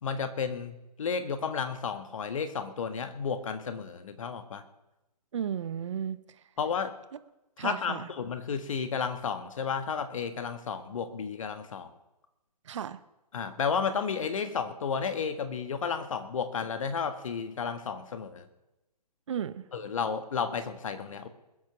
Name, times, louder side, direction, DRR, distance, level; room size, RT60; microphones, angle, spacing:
voice 1, 0.0-4.6 6.6-6.9 7.6-11.9 13.3-18.5 19.7-21.3, left 6 dB, 50° left, 9 dB, 1.5 m, -32 dB
voice 2, 5.3-6.2 7.6-8.1 12.6-13.0 19.3-19.6, right 8 dB, 45° right, 14 dB, 0.8 m, -34 dB
21.0 x 7.6 x 5.9 m, 0.96 s
figure-of-eight pair, 140°, 21 cm